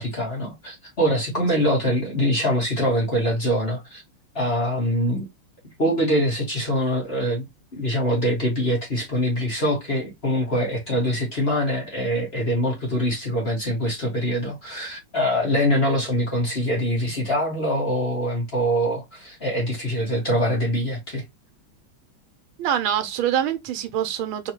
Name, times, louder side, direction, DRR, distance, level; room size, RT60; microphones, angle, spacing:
voice 1, 0.0-4.0 4.3-5.3 5.8-7.4 7.7-21.2, equal, 30° left, 1.9 m, -24 dB
voice 2, 22.6-24.5, right 10 dB, 85° right, 1.6 m, -25 dB
4.0 x 3.5 x 2.9 m
omnidirectional pair, 2.2 m